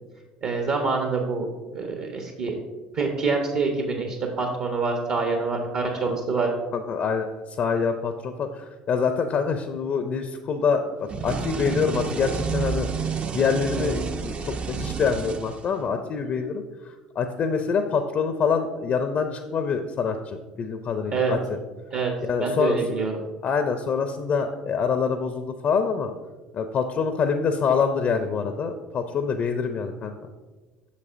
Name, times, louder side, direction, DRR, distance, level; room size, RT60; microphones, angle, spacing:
voice 1, 0.4-1.5 1.7-2.6 2.9-6.5 21.1-21.3 21.9-22.1 22.4-23.2, right 4 dB, 55° right, 2 dB, 1.0 m, -26 dB
voice 2, 6.7-10.8 11.2-12.9 13.3-21.4 22.2-23.0 23.4-26.1 26.5-30.1, left 5 dB, 45° left, 8 dB, 0.5 m, -25 dB
sound 1, 11.1-16.0, right 5 dB, 30° right, 0.5 m, -30 dB
8.4 x 6.6 x 2.6 m, 1.3 s
figure-of-eight pair, 65°, 4 cm